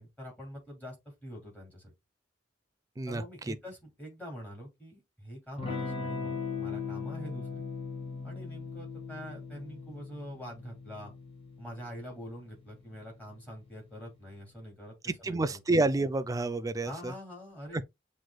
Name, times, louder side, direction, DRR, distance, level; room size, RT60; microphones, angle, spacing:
voice 1, 0.0-1.9 3.1-7.7 8.2-11.1 11.6-15.6 16.8-17.8, equal, 10° left, 2.8 m, -45 dB
voice 2, 3.0-3.6 15.1-17.1 17.7-17.8, right 2 dB, 20° right, 0.3 m, -29 dB
Electric guitar / Strum, 5.6-13.9, left 5 dB, 30° left, 1.7 m, -39 dB
7.6 x 3.1 x 2.3 m
head